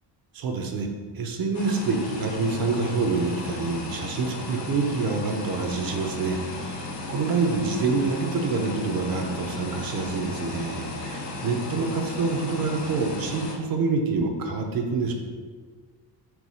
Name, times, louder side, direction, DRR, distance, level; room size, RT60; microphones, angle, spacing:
voice 1, 0.3-0.9 1.1-15.1, right 4 dB, 55° right, 4 dB, 0.8 m, -27 dB
sound 1, 1.5-13.6, left 2 dB, 40° left, 0.9 m, -35 dB
4.7 x 4.1 x 5.4 m, 1.5 s
cardioid pair, 180°, 42 cm